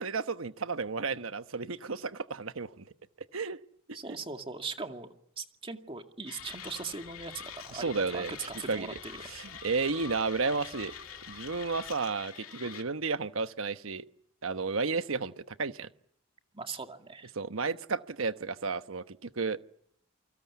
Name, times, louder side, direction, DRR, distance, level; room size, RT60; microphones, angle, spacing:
voice 1, 0.0-2.9 3.3-3.6 7.7-8.3 8.7-9.0 9.3-10.9 11.3-14.1 14.4-15.9 17.3-19.6, right 4 dB, 70° right, 11 dB, 1.1 m, -32 dB
voice 2, 3.9-5.1 5.4-9.2 16.5-17.3, right 4 dB, 25° right, 5 dB, 2.2 m, -40 dB
Mechanisms, 6.3-12.8, left 8 dB, 75° left, 2.3 m, -46 dB
sound 1, 6.4-12.0, left 2 dB, 15° left, 2.5 m, -55 dB
29.5 x 24.5 x 8.3 m, 0.70 s
head